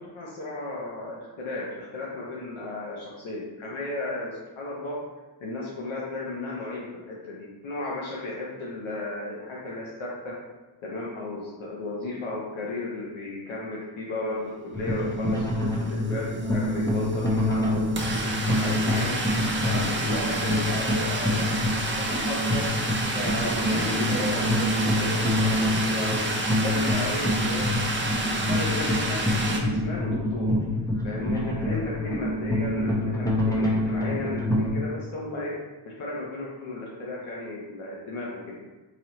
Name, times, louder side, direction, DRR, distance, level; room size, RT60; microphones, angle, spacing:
voice 1, 0.0-5.0 5.4-10.3 10.8-22.7 23.1-27.7 28.2-30.6 31.0-35.5 35.8-38.6, left 2 dB, 85° left, -5 dB, 0.9 m, -34 dB
sound 1, 14.7-34.7, left 1 dB, 5° left, 0.8 m, -26 dB
sound 2, 15.9-16.0 16.2-29.6, right 2 dB, 25° right, 0.7 m, -30 dB
3.1 x 2.9 x 4.0 m, 1.2 s
cardioid pair, 70°, 47 cm